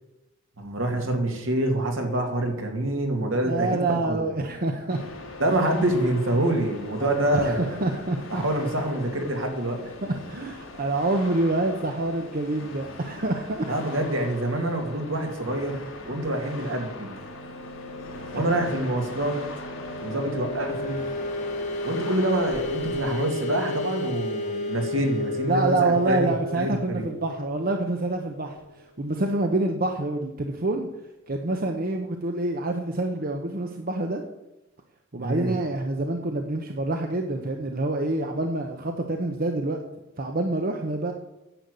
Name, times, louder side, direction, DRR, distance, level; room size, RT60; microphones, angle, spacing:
voice 1, 0.6-4.2 5.4-7.8 8.3-9.8 13.7-17.1 18.3-19.4 20.0-21.0 21.8-26.3 26.6-27.1 35.2-35.5, right 1 dB, 75° right, 3 dB, 2.5 m, -26 dB
voice 2, 3.4-5.1 7.0-7.5 7.8-8.4 10.0-13.9 18.4-18.5 25.5-30.9 31.3-34.2 35.1-39.8 40.2-41.1, right 2 dB, 50° right, 4 dB, 1.0 m, -27 dB
sound 1, 4.9-23.0, left 3 dB, 75° left, 2.2 m, -41 dB
sound 2, 16.4-28.7, left 2 dB, 40° left, 2.9 m, -34 dB
10.0 x 7.1 x 8.2 m, 0.95 s
head